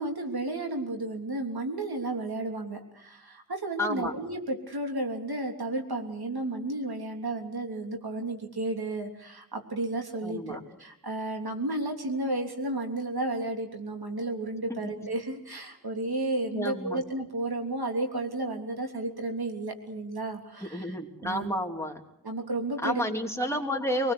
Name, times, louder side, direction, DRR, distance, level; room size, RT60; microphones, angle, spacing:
voice 1, 0.0-20.9 21.2-21.5 22.2-23.0, right 2 dB, 80° right, 3 dB, 3.4 m, -32 dB
voice 2, 3.8-4.1 10.2-10.6 14.7-14.8 16.5-17.0 20.6-22.0 22.8-24.1, left 1 dB, 5° left, 2 dB, 3.2 m, -30 dB
24.5 x 19.5 x 8.2 m, 0.75 s
wide cardioid pair, 55°, 37 cm